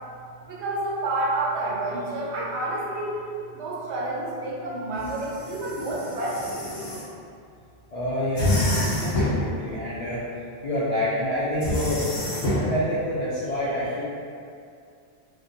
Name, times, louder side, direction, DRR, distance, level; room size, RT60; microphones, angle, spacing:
voice 1, 0.4-3.3 3.5-6.6, right 2 dB, 85° right, -5 dB, 0.9 m, -29 dB
sound 1, 5.0-7.0 8.4-9.5 11.6-12.7, left 1 dB, 85° left, 1.0 m, -27 dB
voice 2, 7.9-14.0, left 1 dB, 60° left, -10 dB, 0.3 m, -28 dB
2.6 x 2.2 x 2.5 m, 2.4 s
omnidirectional pair, 1.1 m